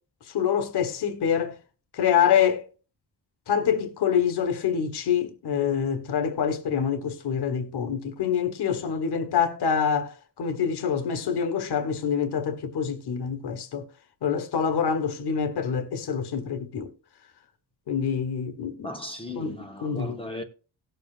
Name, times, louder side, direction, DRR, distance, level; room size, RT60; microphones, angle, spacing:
voice 1, 0.3-1.6 1.9-2.6 3.5-13.9 14.2-16.9 17.9-18.9 19.3-20.2, left 7 dB, 70° left, 1.4 m, -26 dB
voice 2, 18.8-20.4, left 1 dB, 15° left, 1.0 m, -36 dB
18.5 x 6.9 x 2.5 m
wide cardioid pair, 125°, 41 cm